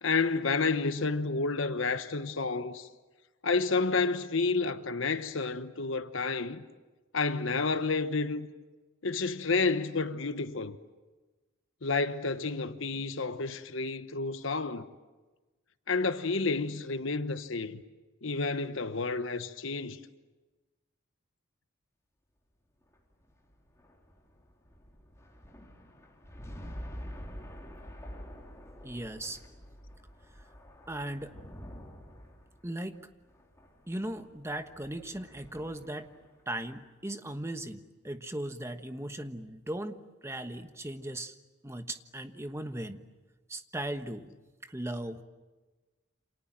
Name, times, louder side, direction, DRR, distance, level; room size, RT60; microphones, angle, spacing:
voice 1, 0.0-2.9 3.4-6.6 7.1-8.5 9.0-10.8 11.8-14.9 15.9-17.8 18.2-20.0, left 4 dB, 65° left, 1.1 m, -30 dB
sound 1, 22.8-36.4, equal, 15° left, 3.8 m, -48 dB
voice 2, 28.8-29.4 30.9-31.4 32.6-33.0 33.9-36.1 36.5-40.0 40.2-41.3 41.6-43.1 43.5-44.3 44.6-45.2, right 1 dB, 15° right, 1.2 m, -38 dB
29.0 x 27.0 x 7.6 m
head